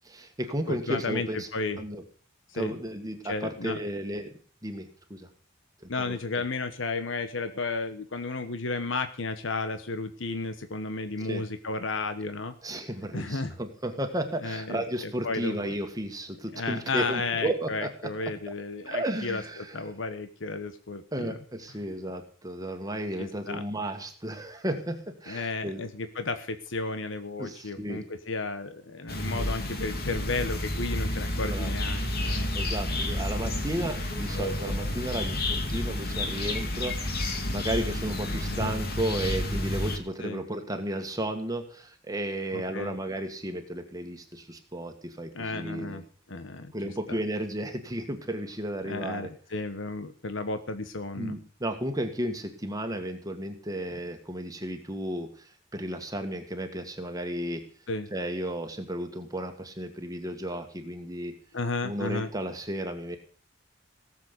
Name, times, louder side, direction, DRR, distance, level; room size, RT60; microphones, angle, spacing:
voice 1, 0.0-1.5 1.8-2.0 2.5-4.3 4.6-5.3 5.8-6.2 11.2-11.4 12.6-17.9 18.5-18.6 18.8-19.8 21.1-25.8 27.4-28.0 31.4-31.7 32.5-46.0 46.7-49.3 51.2-57.6 58.1-61.3 61.8-63.2, right 1 dB, 20° right, 5 dB, 1.7 m, -33 dB
voice 2, 0.7-1.8 2.5-2.7 3.2-3.8 5.9-12.5 13.1-13.5 14.4-15.7 16.5-21.4 23.2-23.6 25.3-32.5 38.5-38.7 40.2-40.4 42.5-43.0 45.3-46.0 46.3-46.7 47.1-47.2 48.8-51.4 57.9-58.1 61.5-62.3, left 3 dB, 70° left, 9 dB, 1.3 m, -33 dB
sound 1, 29.1-40.0, left 1 dB, 50° left, 2.8 m, -30 dB
18.0 x 7.5 x 8.2 m, 0.42 s
head